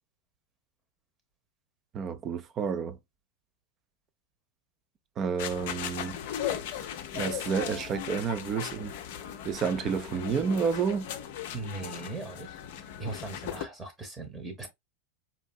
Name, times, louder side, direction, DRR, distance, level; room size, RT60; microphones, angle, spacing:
voice 1, 1.9-3.0 5.2-6.2 7.1-8.9 9.4-11.1, right 6 dB, 30° right, 0.4 m, -30 dB
sound 1, 5.4-13.6, left 10 dB, 50° left, 0.5 m, -37 dB
voice 2, 11.5-12.5 13.0-14.7, right 3 dB, 15° right, 0.9 m, -39 dB
4.4 x 2.7 x 2.2 m
figure-of-eight pair, 90°, 0 cm